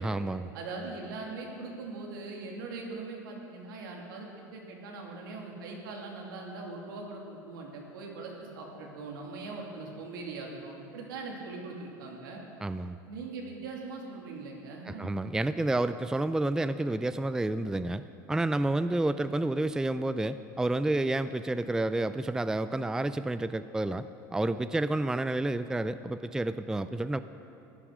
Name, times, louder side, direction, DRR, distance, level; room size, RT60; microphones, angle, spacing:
voice 1, 0.0-0.5 12.6-13.0 14.9-18.0 18.3-24.0 24.3-27.2, right 2 dB, 5° right, 12 dB, 0.4 m, -30 dB
voice 2, 0.5-12.4 13.1-15.2, right 3 dB, 80° right, 0 dB, 2.6 m, -41 dB
14.0 x 10.0 x 6.3 m, 2.7 s
hypercardioid pair, 95°, 11 cm